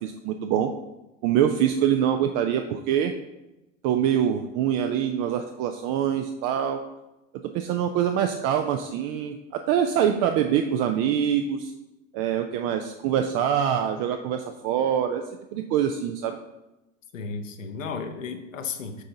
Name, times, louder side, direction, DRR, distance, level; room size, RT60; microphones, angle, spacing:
voice 1, 0.0-0.7 1.2-3.1 3.8-6.8 7.5-11.7 12.1-15.2 15.5-16.4, right 9 dB, 40° right, 6 dB, 0.4 m, -24 dB
voice 2, 17.1-19.0, left 5 dB, 75° left, 6 dB, 0.8 m, -34 dB
6.5 x 3.7 x 3.9 m, 0.98 s
figure-of-eight pair, 75°, 39 cm